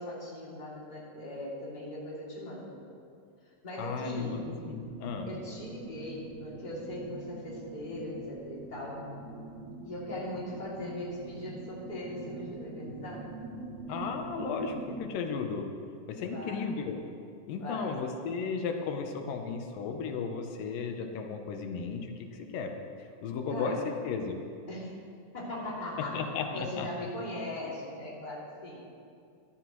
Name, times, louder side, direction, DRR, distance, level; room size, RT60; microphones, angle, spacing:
voice 1, 0.0-2.8 3.6-4.4 5.3-9.0 9.8-13.3 16.2-16.8 17.6-17.9 23.5-23.9 24.7-25.0 25.3-26.2 26.5-28.8, left 1 dB, 15° left, -6 dB, 2.3 m, -39 dB
voice 2, 3.8-5.3 13.9-15.7 16.1-17.0 17.5-22.7 23.0-24.4 26.1-26.9, left 5 dB, 85° left, 4 dB, 2.6 m, -35 dB
sound 1, 4.3-15.1, right 2 dB, 65° right, 2.5 m, -44 dB
15.5 x 12.5 x 3.1 m, 2.4 s
omnidirectional pair, 3.8 m